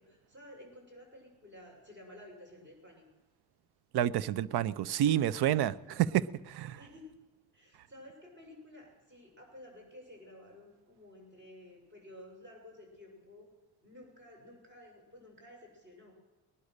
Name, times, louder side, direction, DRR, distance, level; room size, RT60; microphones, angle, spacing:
voice 1, 0.0-3.0 5.4-5.6 6.8-7.0 7.5-13.5 13.8-16.1, left 1 dB, 30° right, 0 dB, 6.6 m, -53 dB
voice 2, 3.9-6.8, right 11 dB, 75° right, 18 dB, 0.7 m, -29 dB
19.0 x 11.0 x 6.6 m, 1.1 s
cardioid pair, 95°, 39 cm